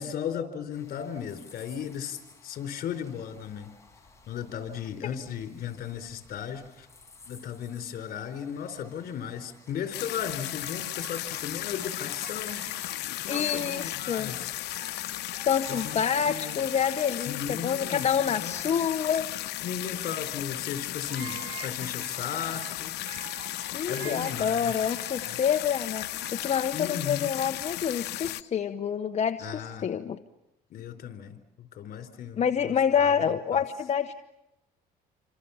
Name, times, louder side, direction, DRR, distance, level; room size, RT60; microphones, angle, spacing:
voice 1, 0.0-3.7 4.3-6.9 7.3-12.7 13.2-14.5 15.7-16.6 17.3-18.0 18.3-18.8 19.6-22.9 23.9-24.9 26.7-27.3 29.4-29.9 30.7-33.1 33.5-33.6, left 8 dB, 60° left, 8 dB, 4.3 m, -36 dB
sound 1, 0.7-16.4, left 4 dB, 15° left, 6.5 m, -56 dB
Bird vocalization bird call bird song, 9.7-26.9, right 9 dB, 65° right, 2.5 m, -48 dB
sound 2, 9.9-28.4, left 16 dB, 80° left, 1.0 m, -35 dB
voice 2, 13.3-14.3 15.4-19.3 23.7-30.2 32.4-34.1, left 7 dB, 40° left, 7 dB, 1.1 m, -27 dB
27.5 x 26.5 x 7.3 m, 0.93 s
cardioid pair, 110°, 17 cm